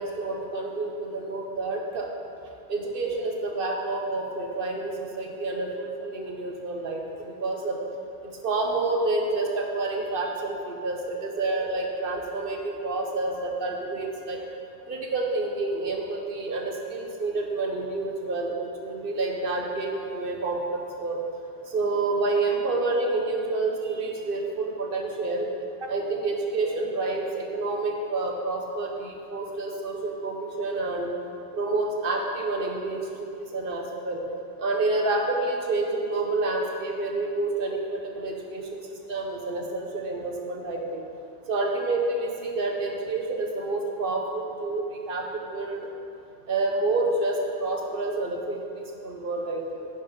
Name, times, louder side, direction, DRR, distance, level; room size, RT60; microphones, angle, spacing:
voice 1, 0.0-2.1 2.7-7.8 8.4-14.4 14.9-21.2 21.7-25.5 25.8-31.1 31.5-34.2 34.6-38.8 39.1-41.0 41.5-45.8 46.5-49.9, right 2 dB, 60° right, 1 dB, 1.2 m, -28 dB
9.9 x 5.6 x 5.4 m, 2.6 s
omnidirectional pair, 1.1 m